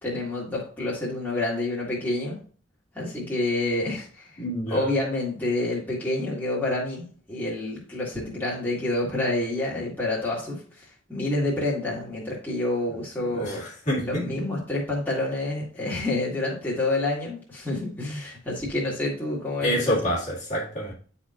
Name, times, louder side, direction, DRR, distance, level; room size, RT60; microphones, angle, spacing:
voice 1, 0.0-2.4 2.9-4.3 4.7-13.6 14.0-20.0, left 2 dB, 10° left, -7 dB, 1.8 m, -28 dB
voice 2, 4.4-4.9 13.3-14.4 19.6-20.9, equal, 35° left, -5 dB, 2.0 m, -28 dB
10.0 x 4.3 x 2.5 m, 0.43 s
head